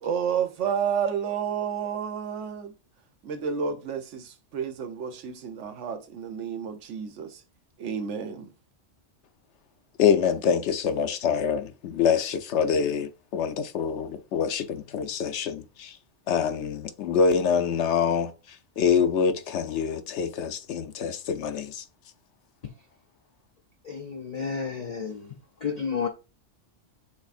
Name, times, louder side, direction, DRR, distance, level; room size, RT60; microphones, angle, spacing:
voice 1, 0.0-2.7 3.2-7.4 7.8-8.5, right 7 dB, 75° right, 1.0 m, -30 dB
voice 2, 10.0-16.0 16.3-21.8, left 7 dB, 75° left, 0.9 m, -25 dB
voice 3, 23.8-25.4 25.6-26.1, left 6 dB, 60° left, 0.4 m, -31 dB
6.1 x 3.3 x 2.5 m
omnidirectional pair, 1.2 m